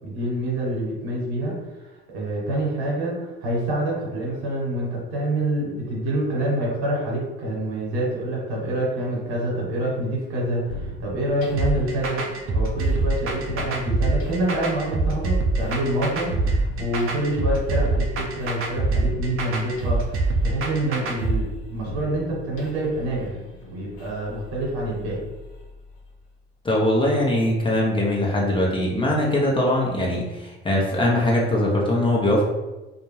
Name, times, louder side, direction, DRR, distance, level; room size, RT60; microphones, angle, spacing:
voice 1, 0.0-1.5 2.1-23.4 23.7-25.2, right 1 dB, 75° right, -4 dB, 1.2 m, -27 dB
sound 1, 10.7-26.3, left 2 dB, 50° left, 0.9 m, -40 dB
sound 2, 11.6-21.4, right 3 dB, 45° right, 0.6 m, -24 dB
voice 2, 26.6-32.4, left 1 dB, 15° left, -3 dB, 0.9 m, -21 dB
2.5 x 2.2 x 3.2 m, 1.1 s
hypercardioid pair, 65°, 30 cm